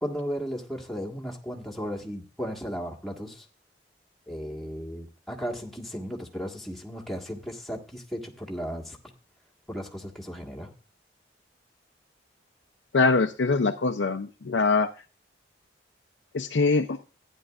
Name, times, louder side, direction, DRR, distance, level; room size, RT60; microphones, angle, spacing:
voice 1, 0.0-3.4 4.3-9.0 9.7-10.7, equal, ahead, 0 dB, 1.5 m, -35 dB
voice 2, 12.9-14.9 16.3-17.0, left 4 dB, 90° left, 4 dB, 0.6 m, -23 dB
14.5 x 9.9 x 2.4 m, 0.34 s
head